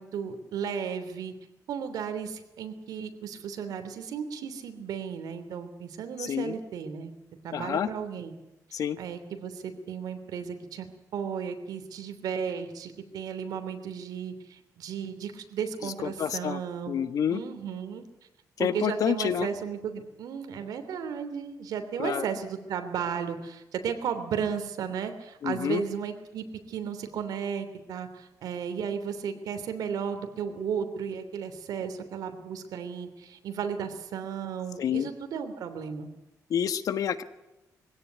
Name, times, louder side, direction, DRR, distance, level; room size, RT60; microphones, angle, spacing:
voice 1, 0.0-1.3 1.7-7.1 7.4-8.3 9.0-10.9 11.1-17.0 17.3-18.0 18.6-36.1, right 7 dB, 80° right, 8 dB, 3.1 m, -34 dB
voice 2, 6.2-6.5 7.5-7.9 8.7-9.0 15.8-16.6 16.9-17.4 18.6-19.5 22.0-22.2 25.4-25.8 34.8-35.1 36.5-37.2, left 8 dB, 65° left, 12 dB, 1.4 m, -28 dB
23.5 x 16.5 x 9.5 m, 0.97 s
cardioid pair, 125°, 6 cm